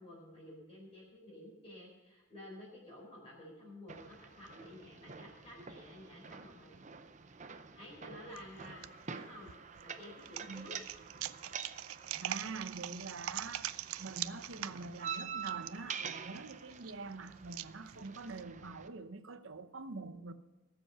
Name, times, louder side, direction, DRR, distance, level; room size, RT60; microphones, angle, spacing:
voice 1, 0.0-6.7 7.7-8.8 9.1-9.5 9.8-10.8, left 1 dB, 25° left, 4.2 m, -52 dB
sound 1, 3.9-18.9, right 6 dB, 35° right, 0.6 m, -47 dB
sound 2, 8.3-8.9 9.5-18.4, right 13 dB, 85° right, 0.4 m, -43 dB
voice 2, 12.2-13.7 14.0-20.3, right 3 dB, 65° right, 0.8 m, -45 dB
18.0 x 7.8 x 5.6 m
head